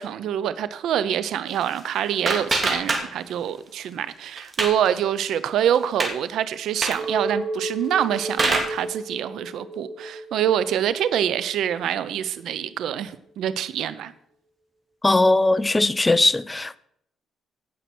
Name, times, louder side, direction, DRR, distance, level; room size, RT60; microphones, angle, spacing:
voice 1, 0.0-14.1, right 10 dB, 75° right, 0.8 m, -25 dB
sound 1, 1.5-3.5 3.8-4.9 5.3-5.4 5.7-6.1 6.7-7.1 7.8-8.8, right 2 dB, 30° right, 2.8 m, -26 dB
Chink clink, 6.9-12.2, right 2 dB, 55° right, 2.4 m, -33 dB
voice 2, 15.0-16.8, left 2 dB, 15° left, 0.6 m, -19 dB
16.0 x 5.9 x 6.2 m
cardioid pair, 90°, 0 cm